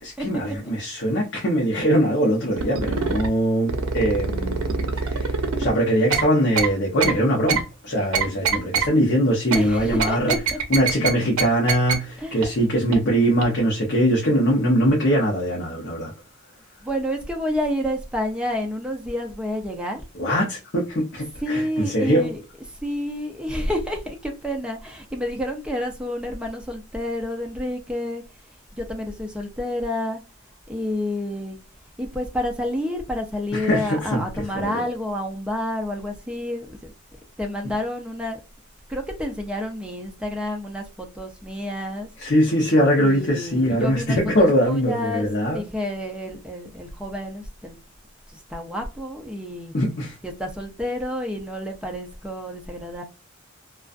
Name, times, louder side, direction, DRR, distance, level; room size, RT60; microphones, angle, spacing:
voice 1, 0.0-10.3 10.7-16.1 20.1-22.3 33.5-34.8 37.6-37.7 42.2-45.6 49.7-50.2, equal, 55° left, 0.7 m, -22 dB
sound 1, 2.6-3.3 3.7-5.7 6.1-6.2 6.6-6.7 7.0-7.1 7.5-7.6 8.1-8.9 9.5-9.6 10.0-11.1 11.4-11.5 11.7-11.9 12.4-12.5 12.9-13.0 13.4-13.5, right 5 dB, 85° right, 0.6 m, -23 dB
voice 2, 9.5-10.6 12.2-12.5 16.8-20.0 21.4-28.2 28.7-30.2 30.7-31.6 32.0-36.9 37.4-38.4 38.9-42.1 43.0-47.8 48.3-49.7 50.2-53.0, left 1 dB, 5° right, 0.5 m, -29 dB
2.4 x 2.3 x 2.4 m
head